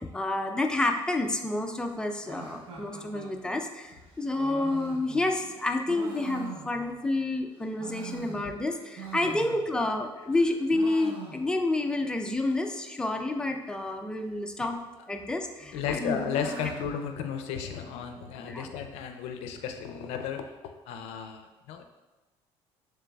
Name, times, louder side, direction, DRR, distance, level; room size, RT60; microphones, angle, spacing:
voice 1, 0.0-14.8 15.1-16.2 18.5-18.7, left 2 dB, 10° left, 4 dB, 0.4 m, -29 dB
sound 1, 2.2-7.2 7.6-10.0 10.3-11.8 12.1-12.2 12.4-12.5 13.2-13.6 14.6-15.2 15.6-18.0, right 3 dB, 60° right, 0.9 m, -44 dB
voice 2, 15.7-20.4 20.9-21.8, left 7 dB, 90° left, 6 dB, 0.5 m, -34 dB
7.0 x 3.3 x 2.3 m, 1.1 s
cardioid pair, 140°, 10 cm